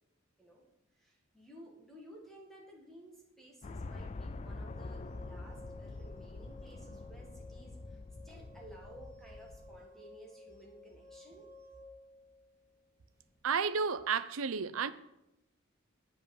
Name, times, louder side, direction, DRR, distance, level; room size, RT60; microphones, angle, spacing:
voice 1, 0.9-11.5, right 1 dB, ahead, 1.9 m, -55 dB
sound 1, 3.6-9.8, left 3 dB, 30° left, 0.4 m, -45 dB
sound 2, 4.7-13.4, left 1 dB, 15° right, 2.1 m, -56 dB
voice 2, 13.4-14.9, right 6 dB, 85° right, 0.5 m, -32 dB
9.0 x 5.4 x 7.2 m
head